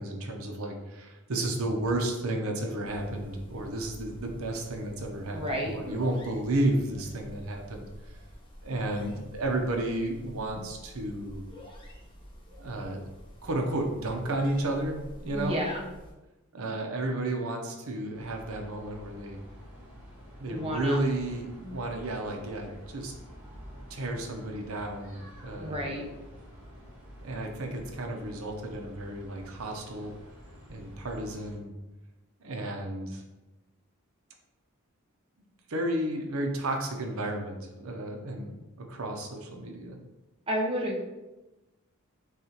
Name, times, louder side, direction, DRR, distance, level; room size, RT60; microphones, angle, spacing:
voice 1, 0.0-7.9 8.6-11.4 12.6-13.0 13.4-15.7 16.5-19.4 20.4-23.1 23.9-25.8 27.2-30.1 30.7-31.7 32.4-33.2 35.7-40.0, right 1 dB, 80° right, 2 dB, 0.7 m, -32 dB
sound 1, 2.8-16.1, equal, 20° left, 0.9 m, -48 dB
voice 2, 5.3-6.0 15.3-15.8 16.6-16.7 20.5-21.0 21.6-21.8 25.6-26.0 40.5-41.0, equal, 25° right, -2 dB, 0.8 m, -32 dB
sound 2, 18.1-31.6, equal, 10° right, 1.4 m, -49 dB
6.6 x 2.4 x 2.9 m, 1.0 s
head